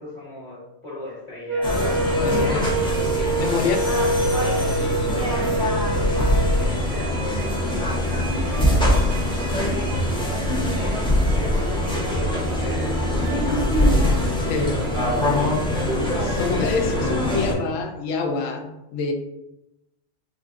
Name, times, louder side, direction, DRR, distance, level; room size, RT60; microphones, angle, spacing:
voice 1, 0.0-4.2 4.7-16.6 16.9-17.2, left 2 dB, 35° left, -7 dB, 1.3 m, -38 dB
Wind instrument woodwind instrument, 1.5-6.7, right 2 dB, 65° right, 0.7 m, -25 dB
sound 1, 1.6-17.5, left 1 dB, 5° left, 0.4 m, -24 dB
voice 2, 2.2-2.7 3.4-3.8 14.4-14.7 16.4-19.1, left 4 dB, 80° left, 4 dB, 1.0 m, -26 dB
sound 2, 4.8-15.4, equal, 55° left, 1.2 m, -25 dB
4.8 x 2.5 x 2.4 m, 0.90 s
omnidirectional pair, 1.4 m